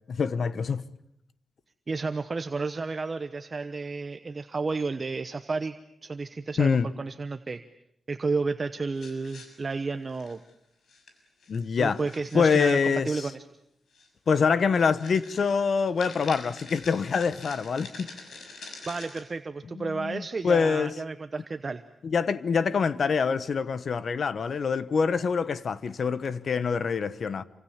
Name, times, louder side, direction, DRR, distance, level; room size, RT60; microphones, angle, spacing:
voice 1, 0.1-0.8 6.6-6.9 11.5-12.0 12.3-13.3 14.3-18.1 19.7-20.9 22.0-27.4, left 5 dB, 60° left, 1.2 m, -25 dB
voice 2, 1.9-5.7 6.0-7.6 8.1-10.4 11.8-13.4 18.9-21.8, right 4 dB, 35° right, 1.0 m, -32 dB
sound 1, 8.9-10.5 10.9-11.1 11.4-13.0 13.9-14.1 14.5-14.6 15.0-19.2, left 3 dB, 85° left, 6.7 m, -46 dB
28.0 x 26.0 x 7.3 m
wide cardioid pair, 120°, 0 cm